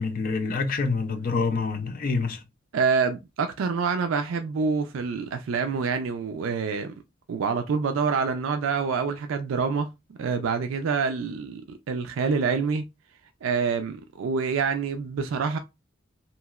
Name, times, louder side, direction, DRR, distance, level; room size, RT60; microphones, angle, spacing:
voice 1, 0.0-2.4, left 4 dB, 45° left, 0.4 m, -26 dB
voice 2, 2.7-6.9 7.3-9.9 10.2-11.6 11.9-12.8 13.4-15.6, right 5 dB, 85° right, 0.4 m, -26 dB
3.0 x 2.8 x 2.3 m
head